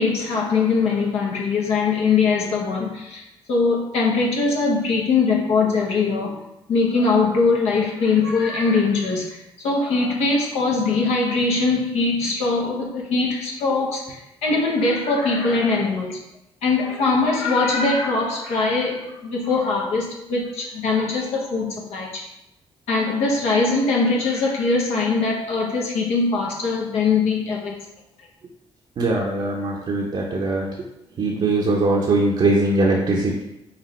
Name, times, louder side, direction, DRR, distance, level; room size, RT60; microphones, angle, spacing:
voice 1, 0.0-3.2 3.5-6.4 6.7-16.2 16.6-22.3 22.9-27.8, left 4 dB, 80° left, -2 dB, 1.0 m, -21 dB
voice 2, 29.0-30.7 31.2-33.4, right 2 dB, 55° right, -2 dB, 0.7 m, -21 dB
5.1 x 2.5 x 3.2 m, 0.87 s
supercardioid pair, 65°, 11 cm